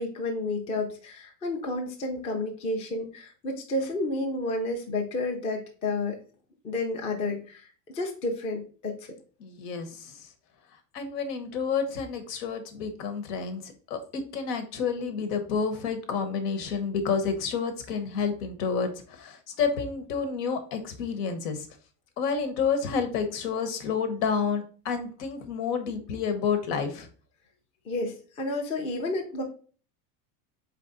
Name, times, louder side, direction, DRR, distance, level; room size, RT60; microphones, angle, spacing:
voice 1, 0.0-6.2 6.6-7.7 7.9-9.0 27.9-29.4, left 2 dB, 15° left, 2 dB, 0.4 m, -31 dB
voice 2, 9.4-10.1 10.9-21.7 22.2-27.1, left 6 dB, 80° left, 8 dB, 1.1 m, -29 dB
4.1 x 3.3 x 3.8 m, 0.40 s
supercardioid pair, 155°, 46 cm